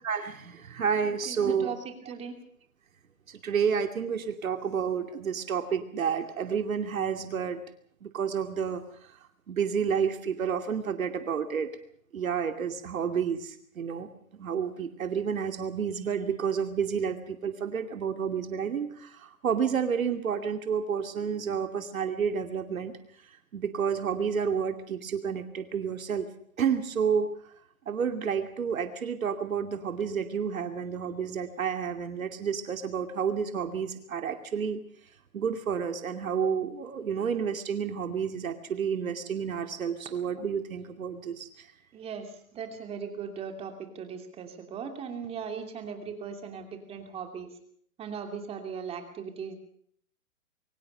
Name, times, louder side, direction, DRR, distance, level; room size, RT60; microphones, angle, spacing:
voice 1, 0.0-1.8 3.3-7.6 8.0-9.2 9.5-11.7 12.1-14.1 14.4-22.9 23.5-26.3 26.6-27.4 27.9-34.8 35.3-41.7, right 7 dB, 75° right, 7 dB, 2.6 m, -30 dB
voice 2, 1.1-2.4 41.9-47.5 48.0-49.6, right 6 dB, 15° right, 5 dB, 2.8 m, -38 dB
23.5 x 18.5 x 6.7 m, 0.62 s
hypercardioid pair, 150°, 41 cm